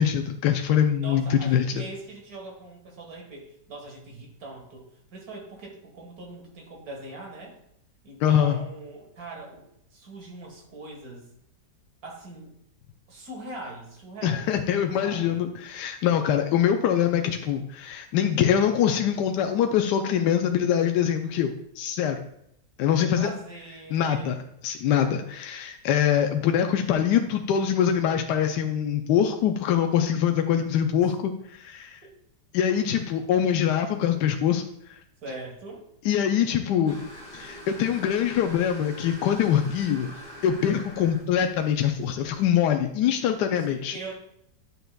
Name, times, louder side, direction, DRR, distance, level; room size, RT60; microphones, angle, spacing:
voice 1, 0.0-1.8 8.2-8.6 14.2-22.2 22.8-23.3 23.9-24.4 24.6-32.0 32.5-35.0 36.0-37.0 37.3-40.1 40.4-44.0, left 9 dB, 75° left, 5 dB, 1.1 m, -24 dB
voice 2, 1.0-7.6 8.0-9.6 9.9-11.3 12.0-12.5 13.1-14.5 15.0-15.4 22.9-24.4 31.0-31.1 32.0-32.1 32.9-33.0 35.2-35.8 43.5-44.2, right 2 dB, 60° right, 1 dB, 2.1 m, -41 dB
sound 1, 36.9-42.5, equal, 5° left, 2.8 m, -45 dB
10.0 x 6.6 x 2.3 m, 0.75 s
omnidirectional pair, 1.9 m